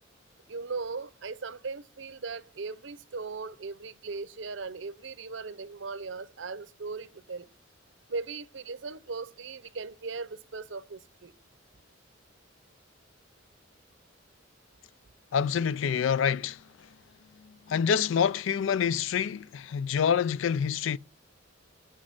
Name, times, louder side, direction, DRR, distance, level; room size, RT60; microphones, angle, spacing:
voice 1, 0.5-7.5 8.1-11.3, right 4 dB, 70° right, 0.7 m, -38 dB
voice 2, 15.3-16.6 17.4-21.0, left 7 dB, 75° left, 0.4 m, -27 dB
6.4 x 6.2 x 7.4 m
head